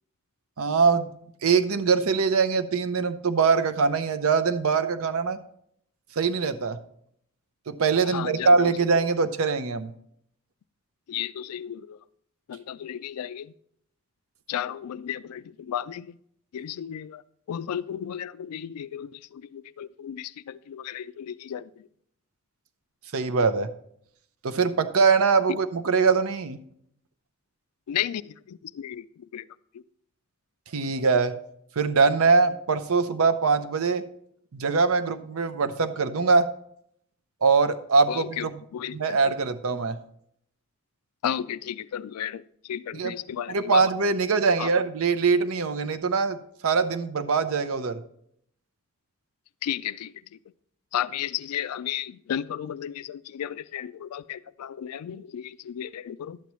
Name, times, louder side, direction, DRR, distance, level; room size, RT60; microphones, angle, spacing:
voice 1, 0.6-1.1 1.4-5.4 6.2-6.8 7.7-9.9 23.1-23.7 24.4-26.6 30.7-31.4 31.8-34.0 34.5-36.5 37.4-38.5 38.9-40.0 42.9-43.1 43.5-48.0, right 4 dB, 75° right, 0.6 m, -23 dB
voice 2, 8.1-8.7 11.1-12.0 12.5-13.5 14.5-16.2 16.5-17.2 17.5-21.9 27.9-29.4 29.7-29.8 38.1-38.5 38.7-39.2 41.2-43.8 44.6-44.7 49.6-50.4 50.9-56.4, left 10 dB, 85° left, 0.3 m, -34 dB
11.5 x 8.3 x 3.1 m
head